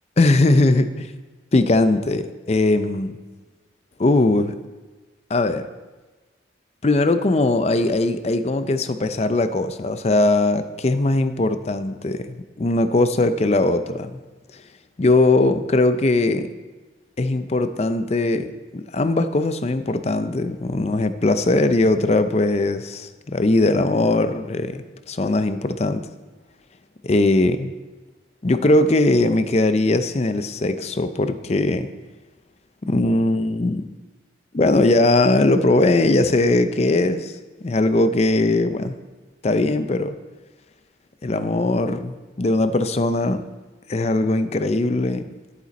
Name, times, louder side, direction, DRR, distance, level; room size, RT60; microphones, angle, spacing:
voice 1, 0.2-1.2 1.5-3.2 4.0-4.5 5.3-5.7 6.8-14.1 15.0-16.5 17.2-26.1 27.0-27.7 28.4-31.9 32.8-33.8 34.5-37.3 37.6-38.9 39.4-40.1 41.2-43.4 43.9-45.2, left 2 dB, 35° left, 10 dB, 0.5 m, -20 dB
11.0 x 8.4 x 4.1 m, 1.2 s
head